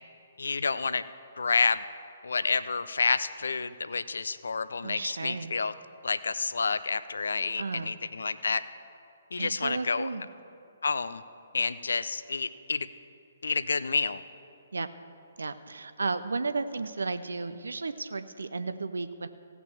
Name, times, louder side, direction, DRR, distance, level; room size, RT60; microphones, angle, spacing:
voice 1, 0.4-1.0 1.4-1.8 2.2-5.7 6.0-8.6 9.3-10.1 10.8-11.2 11.5-12.9 13.4-14.2, left 4 dB, 65° left, 14 dB, 0.5 m, -29 dB
voice 2, 4.8-5.5 7.6-7.9 9.4-10.2 14.7-14.9 15.4-19.3, right 3 dB, 65° right, 11 dB, 0.5 m, -33 dB
16.0 x 6.0 x 6.9 m, 2.7 s
figure-of-eight pair, 130°, 0 cm